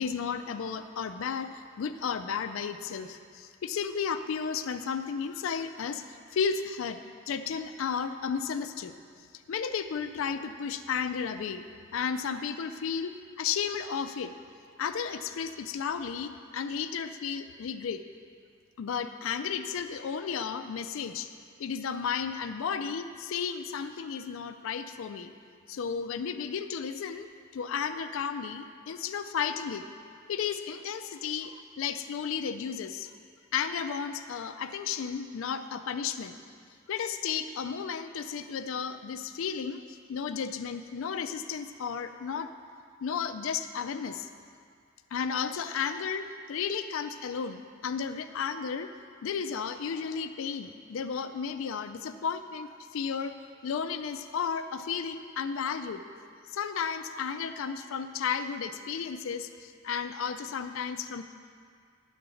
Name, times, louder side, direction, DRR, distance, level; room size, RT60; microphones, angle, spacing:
voice 1, 0.0-8.9 9.5-11.6 11.9-14.3 14.8-18.0 18.8-21.3 21.6-25.3 25.7-27.3 27.5-29.8 30.3-33.1 33.5-36.4 36.9-42.5 43.0-44.3 45.1-48.9 49.2-53.4 53.6-56.0 56.5-61.2, left 6 dB, 70° left, 9 dB, 0.4 m, -33 dB
10.5 x 3.9 x 6.9 m, 2.2 s
head